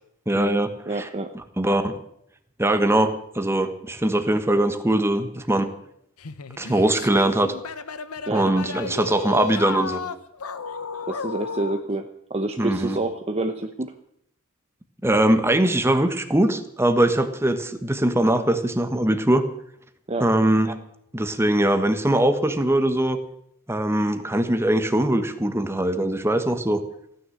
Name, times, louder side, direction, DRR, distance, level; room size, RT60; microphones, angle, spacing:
voice 1, 0.3-1.1 1.6-2.0 2.6-5.7 6.6-7.5 8.3-10.0 12.6-13.0 15.0-19.4 20.2-20.8 21.1-23.2 23.7-26.8, right 1 dB, 10° right, 8 dB, 1.3 m, -21 dB
voice 2, 0.9-1.3 8.3-8.4 11.1-13.9 20.1-20.3, right 2 dB, 30° right, 6 dB, 0.8 m, -28 dB
sound 1, 6.2-11.9, left 5 dB, 90° left, 1.0 m, -33 dB
15.5 x 9.9 x 7.9 m, 0.73 s
head